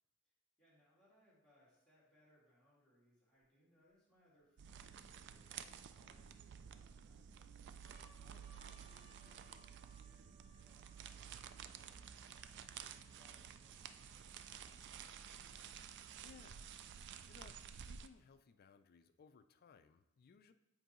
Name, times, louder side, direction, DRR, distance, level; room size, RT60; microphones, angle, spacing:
voice 1, 0.6-7.5 8.2-12.6 12.9-14.9, equal, 5° left, -9 dB, 2.2 m, -73 dB
sound 1, 4.1-5.4 6.1-6.9 7.3-7.4 7.7-13.3 14.0-14.1 14.3-15.3 16.2-17.3, left 1 dB, 10° right, 2.1 m, -71 dB
sound 2, 4.6-18.1, right 8 dB, 55° right, 0.3 m, -53 dB
voice 2, 8.2-8.6 16.2-16.8 17.3-20.5, left 5 dB, 45° left, 10 dB, 0.3 m, -63 dB
7.9 x 4.6 x 3.0 m, 0.91 s
head